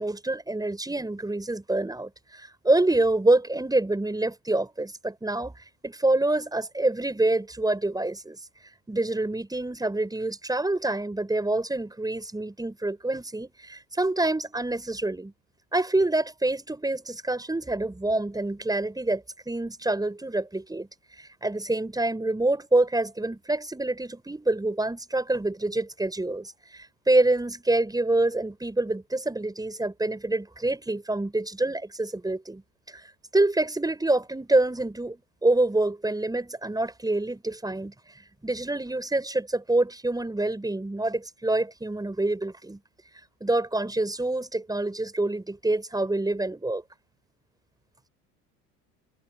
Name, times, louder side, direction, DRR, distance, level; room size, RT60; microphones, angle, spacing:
voice 1, 0.0-8.4 8.9-15.3 15.7-20.9 21.2-32.6 32.9-42.8 43.4-46.8, right 2 dB, 10° right, 6.9 m, -26 dB
hypercardioid pair, 80°, 41 cm